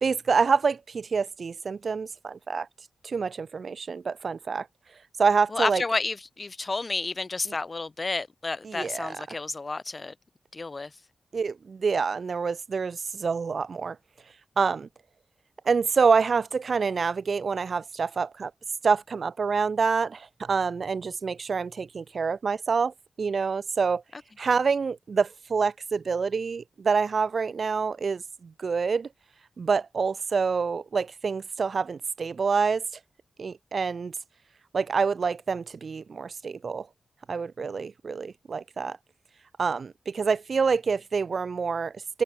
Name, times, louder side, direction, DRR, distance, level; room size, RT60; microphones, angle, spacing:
voice 1, 0.0-2.7 3.0-4.7 5.2-5.8 7.5-7.6 8.6-9.4 11.3-14.0 14.6-14.9 15.7-18.5 18.8-24.0 24.4-29.1 29.6-32.8 33.4-34.1 34.7-36.9 37.3-39.0 39.6-42.2, right 5 dB, 55° right, 0.4 m, -27 dB
voice 2, 5.5-10.1 10.5-10.9, left 3 dB, 30° left, 1.4 m, -30 dB
wide cardioid pair, 135°, 0 cm